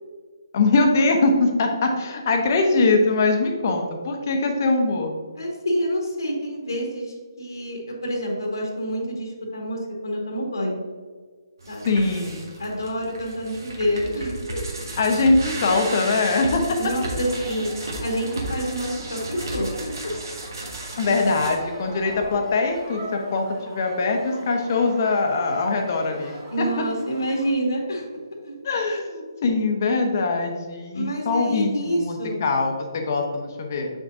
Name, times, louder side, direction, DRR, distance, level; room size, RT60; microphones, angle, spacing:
voice 1, 0.5-5.1 11.8-12.5 15.0-16.8 21.0-26.9 28.6-33.9, left 3 dB, 45° left, 3 dB, 1.1 m, -22 dB
voice 2, 5.4-10.8 11.7-12.0 12.6-14.6 16.8-17.7 18.0-20.1 26.5-28.6 30.9-32.4, equal, 70° left, -1 dB, 2.0 m, -27 dB
sound 1, 11.6-21.5, right 2 dB, 65° right, 2.0 m, -34 dB
sound 2, 16.1-27.5, right 2 dB, 35° right, 1.5 m, -45 dB
sound 3, 21.4-26.5, left 1 dB, 5° left, 1.6 m, -40 dB
7.2 x 6.2 x 2.7 m, 1.5 s
figure-of-eight pair, 140°, 2 cm